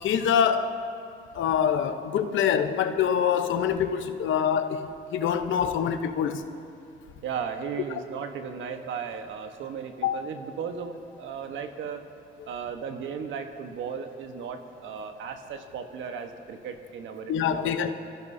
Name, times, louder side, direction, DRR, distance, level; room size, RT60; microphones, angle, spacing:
voice 1, 0.0-0.8 1.3-6.4 10.0-10.2 17.3-17.9, left 8 dB, 75° left, 8 dB, 0.9 m, -25 dB
voice 2, 7.2-12.1 12.5-17.9, right 6 dB, 80° right, 6 dB, 1.2 m, -36 dB
25.0 x 14.5 x 2.7 m, 2.4 s
cardioid pair, 90°, 20 cm